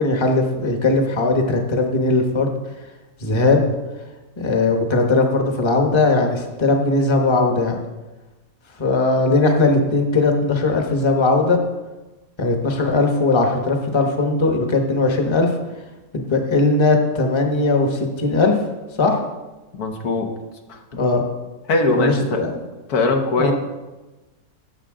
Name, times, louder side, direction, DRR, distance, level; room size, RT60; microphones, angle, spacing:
voice 1, 0.0-2.5 3.2-3.6 4.4-7.8 8.8-11.6 12.4-15.5 16.1-18.6 19.0-19.2 20.9-21.2 21.9-22.5 23.4-23.5, left 3 dB, 20° left, 3 dB, 1.0 m, -19 dB
voice 2, 19.7-20.3 20.7-20.8 21.7-22.4 22.9-23.5, left 2 dB, 75° left, 4 dB, 1.6 m, -21 dB
16.0 x 6.7 x 3.8 m, 1.1 s
omnidirectional pair, 1.6 m